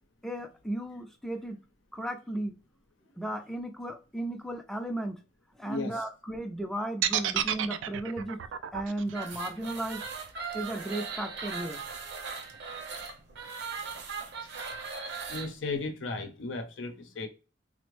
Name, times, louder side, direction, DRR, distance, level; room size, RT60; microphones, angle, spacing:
voice 1, 0.2-1.6 1.9-2.5 3.2-5.2 5.6-8.4 8.7-10.0 10.5-11.8, right 1 dB, ahead, 0.4 m, -35 dB
voice 2, 5.6-6.0 13.9-14.0 15.3-17.3, left 3 dB, 85° left, 0.6 m, -35 dB
sound 1, 7.0-11.1, right 10 dB, 80° right, 0.3 m, -31 dB
sound 2, 9.1-15.5, right 5 dB, 65° right, 0.8 m, -39 dB
3.6 x 2.0 x 3.0 m
head